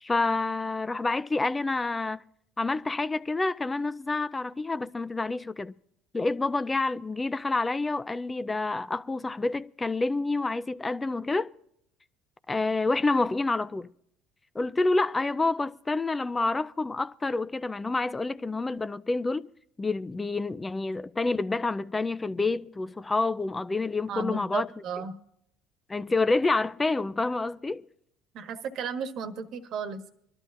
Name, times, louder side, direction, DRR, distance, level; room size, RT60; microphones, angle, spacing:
voice 1, 0.0-2.2 2.6-5.7 6.1-11.5 12.5-13.9 14.5-19.5 19.8-24.7 25.9-27.8, left 3 dB, 20° left, 0.4 m, -28 dB
voice 2, 24.1-25.2 28.3-30.1, right 6 dB, 60° right, 1.3 m, -34 dB
25.0 x 12.5 x 2.5 m
hypercardioid pair, 75°, 0 cm